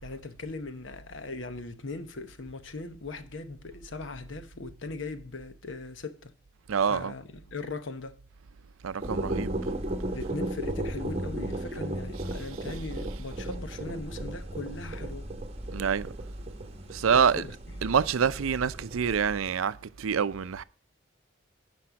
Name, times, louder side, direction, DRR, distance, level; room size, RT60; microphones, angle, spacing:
voice 1, 0.0-6.3 6.9-8.2 10.1-15.3 17.1-17.9, left 3 dB, 70° left, 0.9 m, -39 dB
voice 2, 6.7-7.1 8.8-9.5 15.7-16.1 16.9-17.4 17.8-20.6, right 7 dB, 90° right, 0.5 m, -26 dB
sound 1, 9.0-19.4, right 1 dB, 30° right, 0.9 m, -35 dB
10.0 x 5.4 x 5.8 m
head